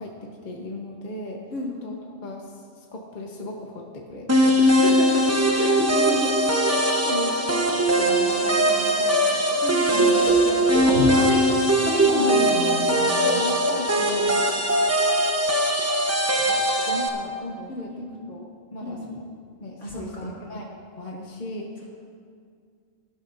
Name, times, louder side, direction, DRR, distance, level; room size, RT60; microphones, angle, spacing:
voice 1, 0.0-1.4 1.7-4.6 5.6-9.6 9.9-10.6 10.9-11.2 11.5-11.6 12.1-14.4 16.3-19.2 19.6-21.8, left 2 dB, 40° left, -1 dB, 1.1 m, -35 dB
sound 1, 4.3-17.1, right 1 dB, 15° right, 0.8 m, -21 dB
voice 2, 4.6-5.7 9.6-10.3 10.7-11.6 11.8-13.4 17.7-18.1 18.8-19.1 19.8-20.3, left 1 dB, 65° left, -6 dB, 3.0 m, -30 dB
19.5 x 11.5 x 2.6 m, 2.2 s
omnidirectional pair, 1.4 m